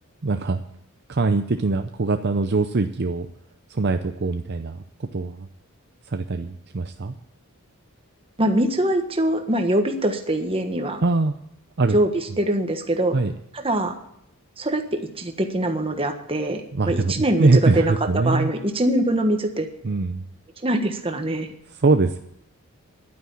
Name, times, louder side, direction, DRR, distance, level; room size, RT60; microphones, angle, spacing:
voice 1, 0.2-0.6 1.1-3.3 3.7-5.5 6.1-7.1 11.0-11.3 11.8-11.9 13.1-13.3 16.7-18.5 19.8-20.2 21.7-22.2, right 3 dB, 50° right, 7 dB, 0.6 m, -22 dB
voice 2, 8.4-11.0 11.9-12.1 12.4-13.2 13.6-13.9 14.6-19.7 20.6-21.5, right 1 dB, 25° right, 5 dB, 1.4 m, -23 dB
11.0 x 9.5 x 7.1 m, 0.75 s
head